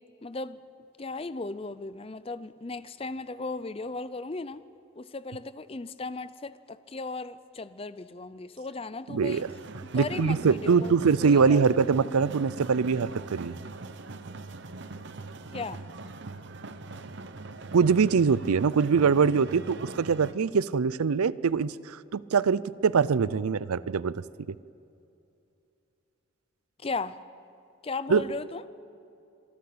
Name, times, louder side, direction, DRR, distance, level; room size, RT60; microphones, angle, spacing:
voice 1, 0.2-0.6 1.0-4.6 5.0-9.4 9.9-11.8 15.5-15.8 26.8-27.2 27.8-28.6, left 3 dB, 25° left, 15 dB, 0.5 m, -36 dB
voice 2, 9.1-9.5 9.9-13.5 17.7-24.2 28.1-28.2, right 5 dB, 85° right, 19 dB, 0.5 m, -23 dB
sound 1, 9.3-20.3, right 3 dB, 50° right, 0.8 m, -42 dB
26.5 x 12.0 x 8.6 m, 2.7 s
head